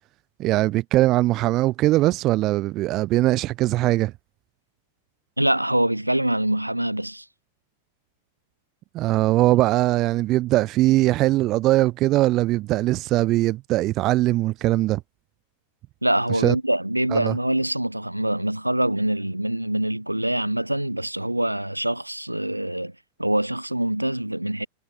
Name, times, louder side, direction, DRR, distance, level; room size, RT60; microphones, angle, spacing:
voice 1, 0.4-4.1 8.9-15.0 16.4-16.5 17.1-17.3, right 17 dB, 35° right, 1.4 m, -21 dB
voice 2, 5.4-7.3 16.0-24.7, right 1 dB, 85° right, 5.1 m, -24 dB
figure-of-eight pair, 90°, 0 cm